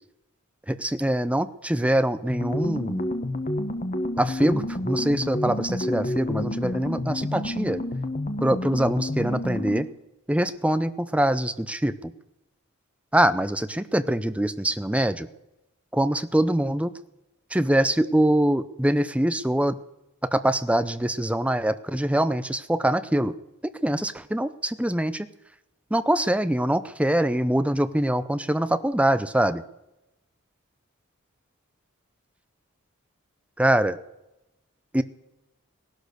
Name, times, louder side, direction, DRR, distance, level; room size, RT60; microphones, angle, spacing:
voice 1, 0.7-3.1 4.2-7.8 8.4-9.9 10.3-12.1 13.1-15.3 15.9-16.9 17.5-19.8 20.3-23.3 23.8-25.3 25.9-29.6 33.6-34.0 34.9-35.0, right 1 dB, 5° right, 12 dB, 0.6 m, -24 dB
sound 1, 2.3-10.0, left 1 dB, 35° left, 1.2 m, -29 dB
18.0 x 11.5 x 6.6 m, 0.93 s
head